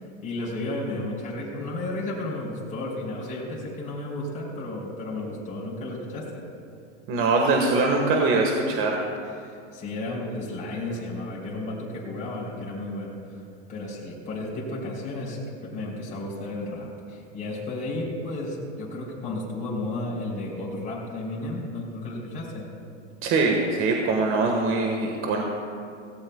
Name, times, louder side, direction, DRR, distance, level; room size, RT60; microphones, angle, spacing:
voice 1, 0.2-6.5 9.3-13.4 13.7-22.7, left 2 dB, 20° left, -5 dB, 3.6 m, -33 dB
voice 2, 7.1-9.0 23.2-25.4, right 3 dB, 35° right, 1 dB, 1.5 m, -22 dB
17.0 x 17.0 x 2.3 m, 2.5 s
supercardioid pair, 125°, 37 cm